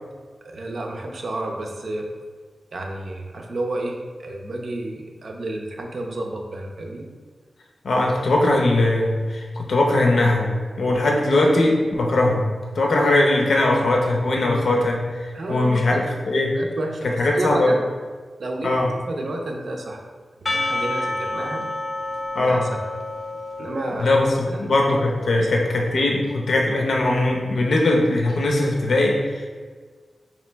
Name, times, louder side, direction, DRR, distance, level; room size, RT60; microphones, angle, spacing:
voice 1, 0.4-2.1 2.7-7.1 15.3-16.0 16.5-17.8 18.4-18.7 19.0-20.0 20.4-21.6 22.4-22.8 23.6-24.1 24.5-24.7 25.3-25.5, right 2 dB, 55° right, 1 dB, 0.5 m, -31 dB
voice 2, 7.8-10.5 10.8-12.4 12.7-16.5 17.2-17.7 18.6-18.9 22.3-22.7 24.0-29.6, left 2 dB, 65° left, 0 dB, 0.6 m, -20 dB
Percussion / Church bell, 20.5-25.0, left 2 dB, 20° left, 0.3 m, -29 dB
4.0 x 3.0 x 3.3 m, 1.5 s
wide cardioid pair, 175°, 0 cm